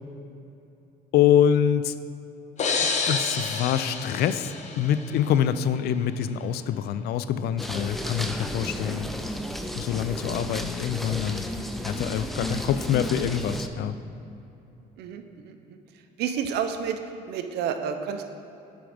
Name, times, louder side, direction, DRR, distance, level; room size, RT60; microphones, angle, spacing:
voice 1, 1.1-1.9 3.1-9.1 9.8-11.4 11.8-14.0, left 9 dB, 70° left, 13 dB, 0.4 m, -25 dB
sound 1, 2.6-5.4, left 4 dB, 45° left, 0.8 m, -29 dB
sound 2, 7.6-13.7, equal, ahead, 0.4 m, -33 dB
voice 2, 15.0-15.8 16.2-17.0 17.3-18.2, right 7 dB, 75° right, 7 dB, 0.6 m, -30 dB
7.8 x 5.1 x 5.0 m, 2.8 s
cardioid pair, 110°, 17 cm